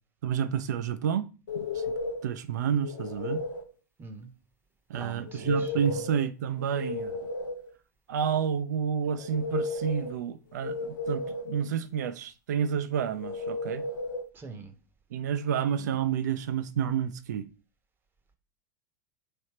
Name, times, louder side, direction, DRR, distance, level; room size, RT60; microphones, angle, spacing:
voice 1, 0.2-1.2 1.6-1.8 2.2-3.4 4.9-7.2 8.1-13.8 15.1-17.5, right 8 dB, 70° right, 0.4 m, -30 dB
sound 1, 1.5-2.3 2.8-3.7 5.3-6.3 6.6-7.7 9.1-10.2 10.6-11.6 13.2-14.2, left 3 dB, 85° left, 0.6 m, -33 dB
voice 2, 4.0-4.3 4.9-6.0 14.3-14.7, right 3 dB, 20° right, 0.7 m, -43 dB
3.3 x 2.7 x 4.2 m
figure-of-eight pair, 90°, 10 cm